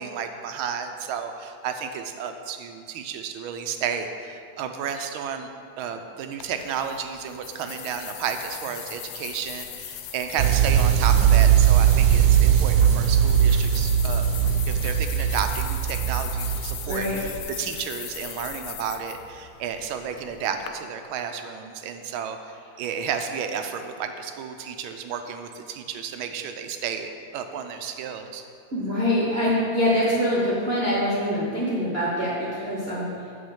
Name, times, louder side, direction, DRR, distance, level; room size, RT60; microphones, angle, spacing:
voice 1, 0.0-5.5 5.8-14.3 14.7-28.4, right 7 dB, 90° right, 7 dB, 1.5 m, -32 dB
sound 1, 6.4-20.7, left 11 dB, 75° left, 1.3 m, -39 dB
sound 2, 10.4-17.4, right 9 dB, 75° right, 1.1 m, -20 dB
voice 2, 16.9-17.2 28.7-33.3, equal, 35° right, -7 dB, 1.3 m, -24 dB
6.7 x 6.0 x 7.2 m, 2.5 s
omnidirectional pair, 2.2 m